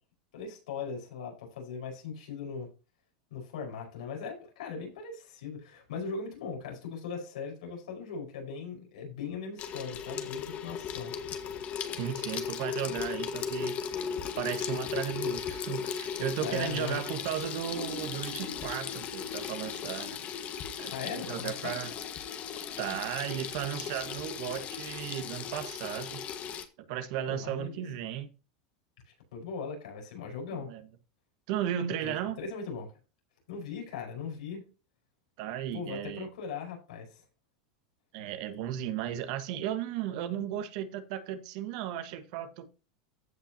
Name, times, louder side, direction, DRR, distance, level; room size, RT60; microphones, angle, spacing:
voice 1, 0.3-2.7 3.3-11.1 16.4-17.0 20.9-21.8 27.3-27.8 29.3-30.7 32.0-32.9 33.5-34.7 35.7-37.2, left 5 dB, 85° left, 5.0 m, -39 dB
Water tap faucet / Sink (filling or washing), 9.6-26.7, left 7 dB, 40° left, 1.5 m, -37 dB
voice 2, 12.0-13.8 14.4-20.2 20.8-21.9 22.8-26.2 26.8-28.3 30.5-30.8 31.5-32.4 35.4-36.3 38.1-42.7, right 10 dB, 65° right, 1.5 m, -35 dB
15.0 x 5.7 x 2.9 m
supercardioid pair, 120°, 4 cm